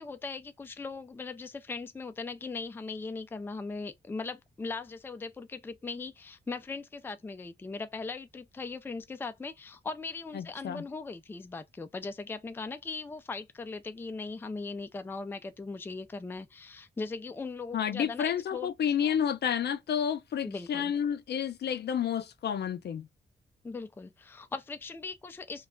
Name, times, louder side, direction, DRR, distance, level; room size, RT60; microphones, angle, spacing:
voice 1, 0.0-18.7 20.4-20.9 23.6-25.7, left 4 dB, 10° left, 0.3 m, -39 dB
voice 2, 10.3-10.8 17.7-23.1, left 8 dB, 75° left, 0.5 m, -30 dB
2.3 x 2.1 x 3.5 m
wide cardioid pair, 130°, 17 cm